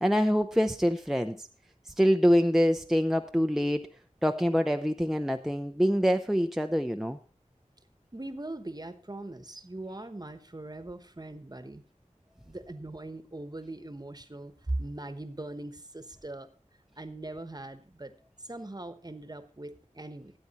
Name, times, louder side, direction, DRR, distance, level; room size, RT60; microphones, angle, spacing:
voice 1, 0.0-1.5 2.0-3.9 4.2-7.2, equal, 5° right, 6 dB, 0.5 m, -25 dB
voice 2, 8.1-11.8 12.4-16.5 17.0-18.1 18.4-20.3, right 2 dB, 30° right, 10 dB, 1.1 m, -40 dB
13.5 x 8.6 x 4.1 m, 0.39 s
wide cardioid pair, 55°, 13 cm